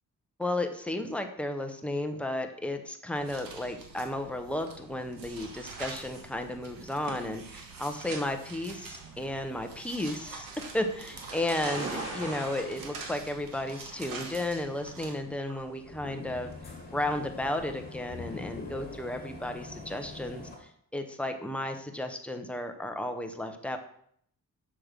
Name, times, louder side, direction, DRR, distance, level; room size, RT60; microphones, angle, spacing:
voice 1, 0.4-10.5 10.7-16.5 16.9-23.8, left 1 dB, 5° left, 5 dB, 0.6 m, -33 dB
sound 1, 3.1-15.1, right 4 dB, 70° right, 1.6 m, -45 dB
sound 2, 5.2-17.6, right 2 dB, 45° right, 3.4 m, -44 dB
sound 3, 15.5-20.6, left 3 dB, 25° left, 1.9 m, -44 dB
6.9 x 6.1 x 5.1 m, 0.66 s
wide cardioid pair, 175°, 35 cm